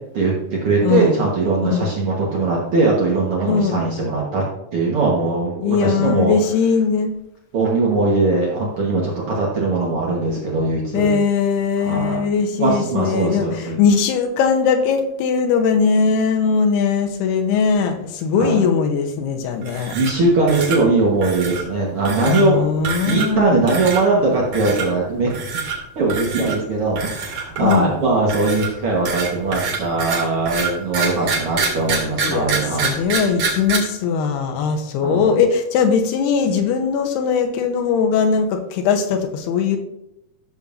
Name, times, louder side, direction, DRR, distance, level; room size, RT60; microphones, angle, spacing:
voice 1, 0.1-4.4 4.7-6.3 7.5-11.1 11.8-12.2 12.6-13.8 18.4-18.6 19.9-22.6 22.9-25.3 25.9-32.9 35.0-35.3, right 3 dB, 80° right, -3 dB, 1.2 m, -20 dB
voice 2, 0.8-1.2 1.6-1.9 3.5-3.8 5.6-7.2 10.9-20.0 22.2-23.6 27.6-27.9 32.2-39.8, left 6 dB, 85° left, 5 dB, 2.9 m, -20 dB
sound 1, 19.6-20.2 20.5-20.8 21.2-21.6 22.1-22.4 22.8-23.4 23.7-24.0 24.5-24.9 25.3-25.8 26.1-26.6 27.0-27.9 28.3-33.8, right 5 dB, 55° right, 3.1 m, -25 dB
13.5 x 7.0 x 2.6 m, 0.83 s
omnidirectional pair, 4.7 m